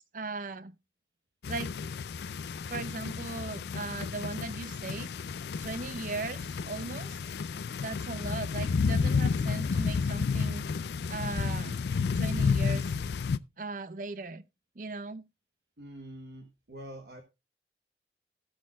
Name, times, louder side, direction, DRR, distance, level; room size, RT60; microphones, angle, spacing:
voice 1, 0.1-0.8 1.5-1.7 2.7-5.1 5.6-7.2 7.8-10.7 11.1-11.8 12.1-12.9 13.6-14.4 14.8-15.3, right 3 dB, 50° right, 0.6 m, -38 dB
sound 1, 1.4-13.4, left 5 dB, 70° left, 0.4 m, -31 dB
voice 2, 15.8-17.2, right 1 dB, 65° right, 1.2 m, -45 dB
19.0 x 6.4 x 2.4 m
head